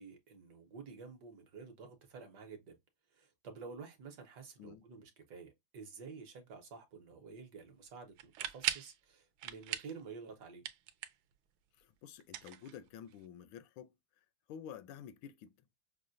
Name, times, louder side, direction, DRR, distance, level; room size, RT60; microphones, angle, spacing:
voice 1, 0.0-2.8 3.1-10.6, right 5 dB, 65° right, 1.3 m, -50 dB
sound 1, 8.2-9.0 9.4-10.0 10.3-11.3 12.2-13.2, right 11 dB, 85° right, 1.4 m, -39 dB
voice 2, 11.8-13.9 14.5-15.5, left 8 dB, 85° left, 1.3 m, -50 dB
6.1 x 2.1 x 2.5 m
omnidirectional pair, 2.1 m